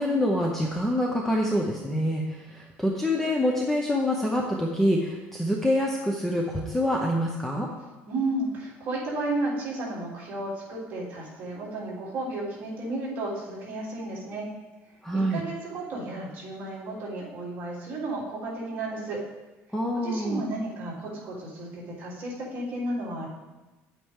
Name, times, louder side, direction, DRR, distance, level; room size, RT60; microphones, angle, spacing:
voice 1, 0.0-7.7 15.0-15.4 19.7-20.4, equal, 5° left, -1 dB, 0.7 m, -26 dB
voice 2, 8.1-14.5 15.1-19.2 19.9-23.3, right 2 dB, 35° right, -7 dB, 3.4 m, -33 dB
10.0 x 8.4 x 3.7 m, 1.1 s
cardioid pair, 165°, 5 cm